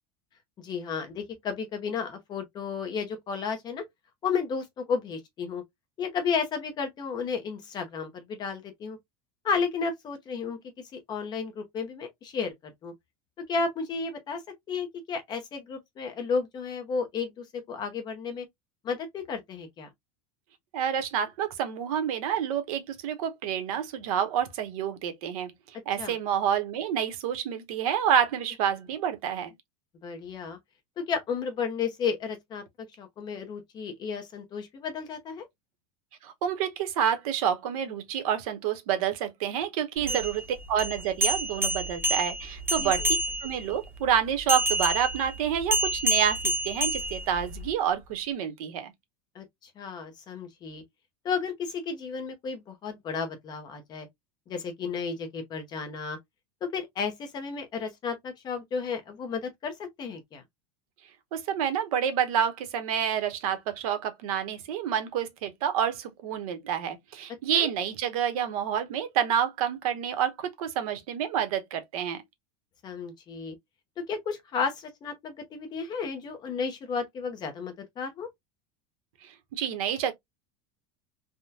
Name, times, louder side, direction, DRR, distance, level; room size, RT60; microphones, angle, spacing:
voice 1, 0.6-3.8 4.2-5.6 6.0-9.0 9.4-10.6 10.9-12.5 12.8-12.9 13.4-14.4 14.7-18.5 18.8-19.9 26.0-26.1 30.0-30.6 31.0-32.6 33.0-35.5 40.1-40.2 42.8-42.9 49.3-49.4 49.8-50.8 51.2-54.1 54.5-56.2 56.6-60.4 67.5-67.7 72.8-73.5 74.1-78.3, left 5 dB, 20° left, 0.7 m, -33 dB
voice 2, 20.7-25.5 25.9-29.5 36.2-48.9 61.3-72.2 79.2-80.1, right 9 dB, 70° right, 0.9 m, -28 dB
sound 1, 40.0-43.7 44.5-47.7, right 1 dB, 10° right, 0.8 m, -28 dB
3.5 x 2.1 x 2.7 m
supercardioid pair, 170°, 19 cm